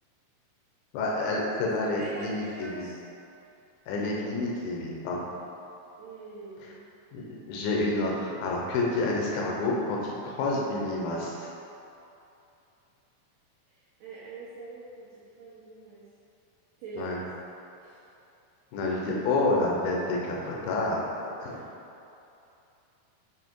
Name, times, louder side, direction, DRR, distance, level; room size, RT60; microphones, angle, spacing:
voice 1, 0.9-2.9 3.9-5.2 7.1-11.4 17.0-17.2 18.7-21.0 21.4-21.6, left 2 dB, 75° left, -2 dB, 2.5 m, -29 dB
voice 2, 1.8-3.0 6.0-6.9 13.7-16.0 16.8-17.2 17.8-18.0 21.5-21.7, right 2 dB, 70° right, -10 dB, 2.2 m, -44 dB
7.3 x 3.4 x 4.5 m, 2.8 s
omnidirectional pair, 4.6 m